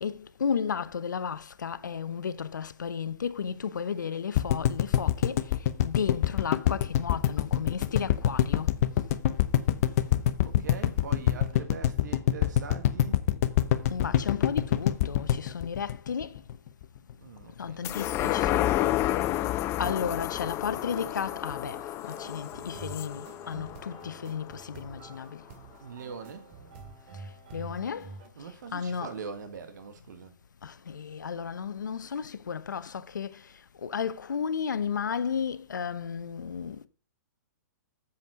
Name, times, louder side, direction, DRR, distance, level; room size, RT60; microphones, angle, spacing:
voice 1, 0.0-5.4 5.8-8.7 13.9-16.4 17.6-18.6 19.8-21.8 22.1-25.4 27.5-28.1 28.7-29.1 30.6-33.4 33.8-36.9, left 6 dB, 80° left, 0.8 m, -33 dB
sound 1, 4.3-16.5 16.8-16.9 17.1-17.2, left 12 dB, 50° left, 0.9 m, -25 dB
voice 2, 10.4-13.2 17.2-19.3 25.8-26.5 28.3-30.3, right 5 dB, 70° right, 1.6 m, -43 dB
sound 2, 17.8-24.6 25.1-25.2, left 14 dB, 25° left, 0.5 m, -30 dB
sound 3, 20.7-28.3, right 4 dB, 45° right, 2.3 m, -48 dB
7.5 x 7.3 x 6.1 m
hypercardioid pair, 125°, 10 cm